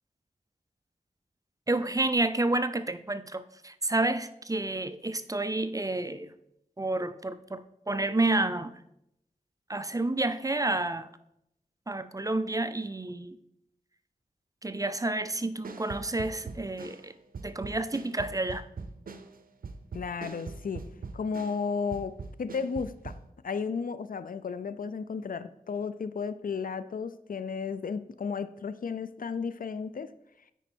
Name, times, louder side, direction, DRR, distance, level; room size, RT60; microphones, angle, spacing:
voice 1, 1.7-6.3 6.8-8.8 9.7-11.1 11.9-13.4 14.6-17.1 17.4-18.6, right 2 dB, 25° right, 12 dB, 0.5 m, -30 dB
sound 1, 15.6-21.7 21.9-23.3, right 4 dB, 75° right, 0.7 m, -42 dB
voice 2, 19.9-20.8 21.1-23.1 23.4-30.1, left 5 dB, 70° left, 14 dB, 0.5 m, -34 dB
9.0 x 5.1 x 4.4 m, 0.79 s
cardioid pair, 45°, 15 cm